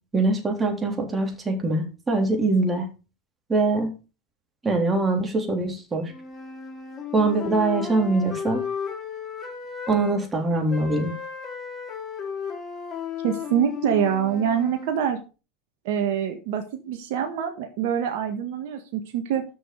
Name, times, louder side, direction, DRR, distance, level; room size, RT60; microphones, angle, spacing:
voice 1, 0.1-2.9 3.5-3.9 4.6-6.1 7.1-8.6 9.9-11.1, right 2 dB, 20° right, 2 dB, 3.7 m, -23 dB
sound 1, 6.1-10.2 10.7-14.9, left 7 dB, 35° left, 4.3 m, -35 dB
voice 2, 13.2-15.2 15.8-19.4, right 8 dB, 70° right, 5 dB, 1.6 m, -25 dB
9.8 x 6.8 x 5.3 m, 0.33 s
hypercardioid pair, 100°, 0 cm